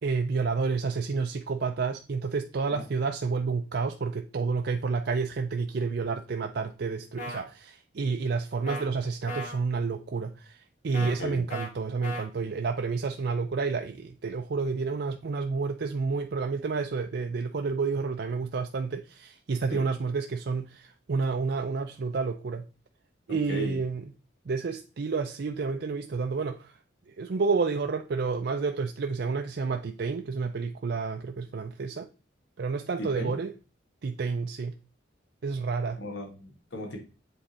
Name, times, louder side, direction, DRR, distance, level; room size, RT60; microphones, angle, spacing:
voice 1, 0.0-22.6 23.3-24.1 24.5-26.8 27.1-32.1 32.6-33.5 34.0-34.8 35.4-36.0, right 4 dB, 55° right, 0.4 m, -30 dB
sound 1, 7.2-7.4 8.7-8.8 9.3-9.6 10.9-11.1 11.5-11.7 12.0-12.2, left 1 dB, 40° left, 1.6 m, -36 dB
voice 2, 11.0-11.4 19.7-19.8 23.3-23.8 33.0-33.3 36.0-37.0, left 1 dB, 80° left, 1.9 m, -36 dB
7.5 x 3.6 x 4.2 m
head